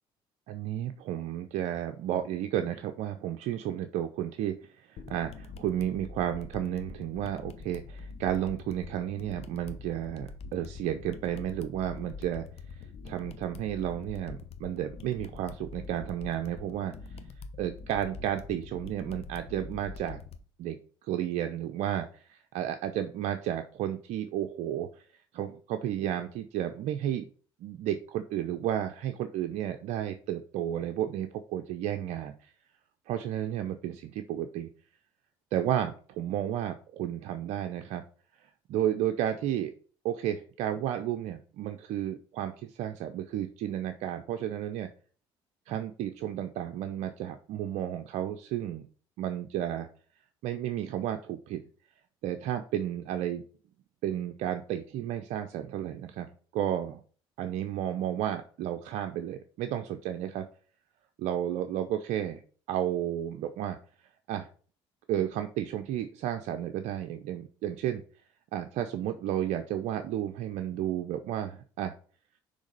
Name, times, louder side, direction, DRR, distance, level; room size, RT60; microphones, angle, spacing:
voice 1, 0.5-12.5 12.8-17.2 17.6-20.2 20.6-25.0 25.3-27.2 27.6-32.5 33.1-34.7 35.5-38.0 38.7-39.7 40.0-44.9 45.7-48.8 49.2-49.9 50.4-51.6 52.2-53.4 54.0-57.0 57.4-60.4 61.2-62.4 62.7-63.8 64.3-64.5 65.1-68.0 68.5-71.9, right 11 dB, 70° right, 7 dB, 0.6 m, -32 dB
sound 1, 5.0-20.4, left 4 dB, 55° left, 0.9 m, -44 dB
6.3 x 3.3 x 5.3 m, 0.41 s
hypercardioid pair, 65°, 12 cm